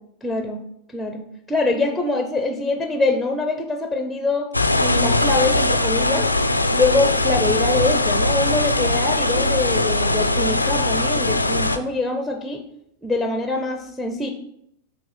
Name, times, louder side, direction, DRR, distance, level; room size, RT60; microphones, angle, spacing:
voice 1, 0.2-0.6 0.9-1.2 1.5-6.3 6.7-12.6 13.0-14.3, left 2 dB, ahead, 5 dB, 0.7 m, -24 dB
sound 1, 4.5-11.8, left 2 dB, 85° left, 0.4 m, -20 dB
8.5 x 3.1 x 5.3 m, 0.75 s
figure-of-eight pair, 90°, 0 cm